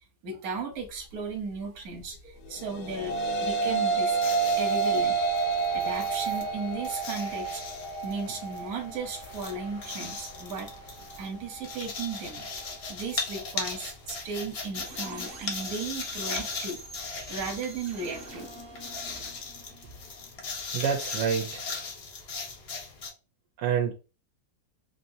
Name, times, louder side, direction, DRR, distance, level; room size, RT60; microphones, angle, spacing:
voice 1, 0.2-4.2 4.5-5.2 5.7-7.6 8.0-10.7 11.2-12.5 12.9-16.8 17.3-18.5, right 4 dB, 60° right, 1.3 m, -35 dB
sound 1, 2.6-11.8, right 4 dB, 75° left, 1.2 m, -29 dB
sound 2, 4.1-23.1, left 4 dB, 50° left, 0.8 m, -39 dB
sound 3, 14.7-20.5, right 2 dB, 40° right, 0.9 m, -47 dB
voice 2, 20.7-21.6 23.6-23.9, right 7 dB, 75° right, 1.2 m, -27 dB
3.4 x 2.7 x 2.7 m
omnidirectional pair, 1.9 m